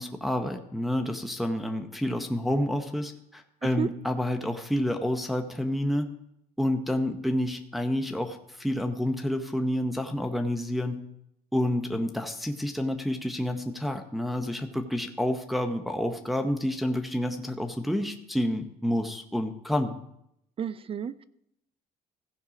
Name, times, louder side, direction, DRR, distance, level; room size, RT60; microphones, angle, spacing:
voice 1, 0.0-6.1 6.6-11.0 11.5-20.0, left 1 dB, ahead, 4 dB, 0.8 m, -29 dB
voice 2, 20.6-21.2, right 8 dB, 35° right, 17 dB, 0.4 m, -31 dB
16.0 x 5.4 x 5.0 m, 0.78 s
cardioid pair, 110°, 17 cm